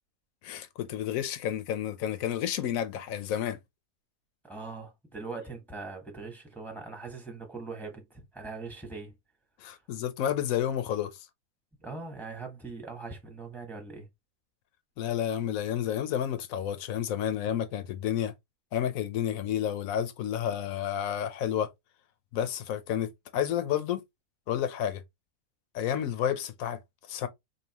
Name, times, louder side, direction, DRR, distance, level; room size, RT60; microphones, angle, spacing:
voice 1, 0.4-3.6 9.6-11.3 15.0-18.3 18.7-21.7 22.3-24.0 24.5-25.0 25.7-26.8 27.1-27.3, left 10 dB, 75° left, 1.1 m, -30 dB
voice 2, 4.4-9.1 11.8-14.1, right 4 dB, ahead, 1.2 m, -41 dB
4.8 x 2.9 x 2.9 m
omnidirectional pair, 1.5 m